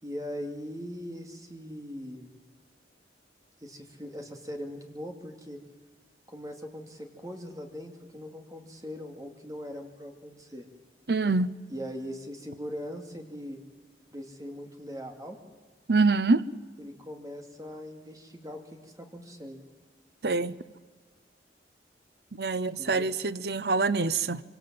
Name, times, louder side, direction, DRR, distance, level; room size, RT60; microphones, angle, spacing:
voice 1, 0.0-2.3 3.6-5.6 6.3-10.6 11.7-13.6 14.1-15.4 16.8-19.7 22.6-23.1, equal, 20° right, 3 dB, 2.5 m, -40 dB
voice 2, 11.1-11.5 15.9-16.4 20.2-20.6 22.3-24.4, right 3 dB, 65° right, 16 dB, 0.7 m, -25 dB
26.0 x 24.5 x 7.7 m, 1.4 s
head